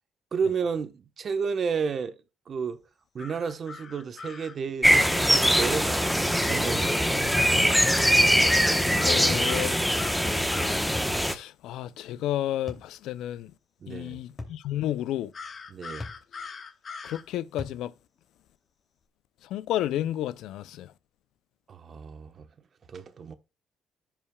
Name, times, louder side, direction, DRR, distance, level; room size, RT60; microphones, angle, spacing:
voice 1, 0.3-2.2 2.5-2.8 3.1-6.1 6.5-7.3 13.8-14.2 15.7-16.1 21.7-22.5 22.9-23.3, right 6 dB, 50° right, 1.1 m, -32 dB
sound 1, 3.2-4.6 9.0-10.9 15.3-17.2, left 5 dB, 45° left, 1.2 m, -41 dB
sound 2, 4.8-11.4, equal, ahead, 1.0 m, -22 dB
sound 3, 7.8-8.1 9.3-9.6 10.9-11.2 12.7-12.9 14.4-14.6 16.0-16.3 17.6-17.8, left 2 dB, 30° left, 2.7 m, -39 dB
voice 2, 9.0-9.7 11.2-13.5 13.9-15.3 17.0-17.9 19.4-20.9, left 12 dB, 90° left, 0.4 m, -31 dB
14.5 x 5.6 x 2.3 m
cardioid pair, 90°, 0 cm